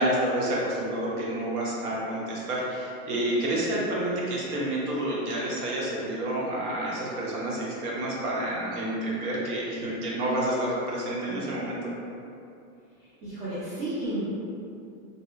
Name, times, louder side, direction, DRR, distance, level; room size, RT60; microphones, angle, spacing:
voice 1, 0.0-11.8, right 1 dB, 75° right, -5 dB, 1.0 m, -29 dB
voice 2, 13.0-14.2, right 1 dB, 40° right, -12 dB, 0.7 m, -33 dB
2.9 x 2.7 x 2.4 m, 2.6 s
supercardioid pair, 160°, 45 cm